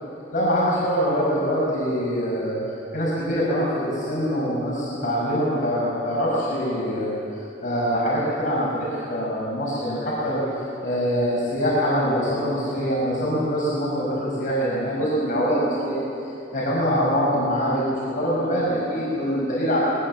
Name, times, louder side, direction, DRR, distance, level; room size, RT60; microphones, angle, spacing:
voice 1, 0.3-2.6 2.9-7.2 7.6-10.4 10.8-16.0 16.5-19.8, equal, 45° left, -7 dB, 5.8 m, -24 dB
21.0 x 20.0 x 7.6 m, 2.8 s
head